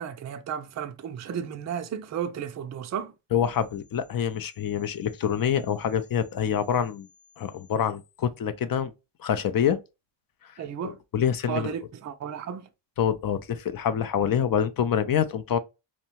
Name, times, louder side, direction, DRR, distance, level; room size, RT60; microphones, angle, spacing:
voice 1, 0.0-3.1 10.6-11.0 11.5-12.7, right 8 dB, 35° right, 0.4 m, -33 dB
voice 2, 3.3-7.1 7.4-8.9 9.2-9.8 10.4-10.5 10.8-11.7 13.0-15.6, left 8 dB, 45° left, 0.4 m, -26 dB
2.8 x 2.1 x 2.8 m
cardioid pair, 70°, 50 cm